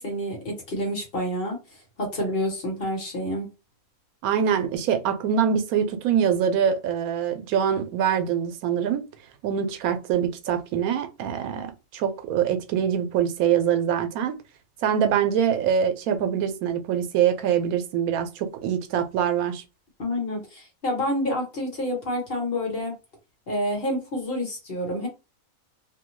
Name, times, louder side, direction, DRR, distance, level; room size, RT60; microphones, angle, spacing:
voice 1, 0.0-1.6 2.0-3.5 20.0-22.9 23.5-25.1, left 1 dB, 45° left, 1.1 m, -28 dB
voice 2, 4.2-9.0 9.4-14.4 14.8-19.6, right 8 dB, 85° right, 1.0 m, -24 dB
2.6 x 2.2 x 3.0 m
omnidirectional pair, 1.5 m